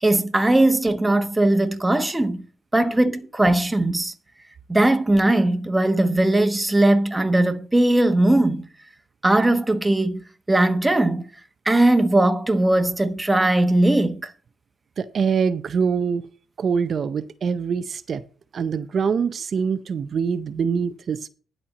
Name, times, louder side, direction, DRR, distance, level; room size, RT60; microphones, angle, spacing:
voice 1, 0.0-2.4 2.7-4.1 4.7-8.7 9.2-10.2 10.5-11.3 11.7-14.3, right 1 dB, 10° right, 1.1 m, -19 dB
voice 2, 15.0-16.3 16.6-18.2 18.5-21.3, right 6 dB, 50° right, 0.6 m, -24 dB
11.0 x 4.4 x 6.6 m
cardioid pair, 90°, 0 cm